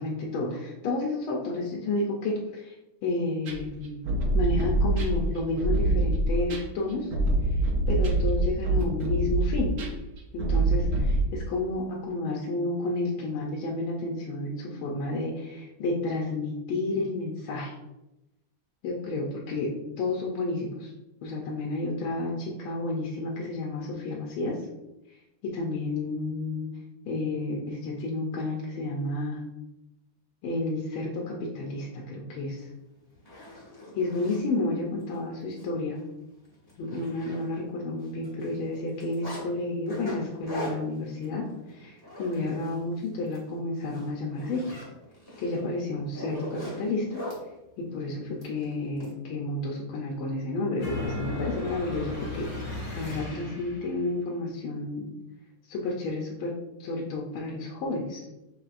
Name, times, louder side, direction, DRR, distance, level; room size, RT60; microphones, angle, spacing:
voice 1, 0.0-2.8 3.0-4.0 4.3-7.1 7.5-7.6 7.9-9.7 10.3-17.7 18.8-19.7 20.0-20.9 21.2-24.6 25.4-26.7 27.1-29.4 30.4-32.7 34.0-36.0 36.8-44.6 45.4-47.2 47.8-55.1 55.7-56.5 56.8-58.3, left 2 dB, 85° left, -2 dB, 1.6 m, -31 dB
sound 1, 3.5-11.2, right 2 dB, 60° right, 1.0 m, -25 dB
Zipper (clothing), 32.6-32.7 33.1-34.4 35.0-35.2 35.5-35.6 36.0-36.1 36.4-37.8 38.0-39.4 39.9-42.8 43.1-43.4 43.8-47.4 48.4-49.1, left 1 dB, 10° left, 1.5 m, -41 dB
sound 2, 50.8-54.0, left 2 dB, 60° left, 2.3 m, -35 dB
6.5 x 3.2 x 2.5 m, 0.93 s
omnidirectional pair, 2.3 m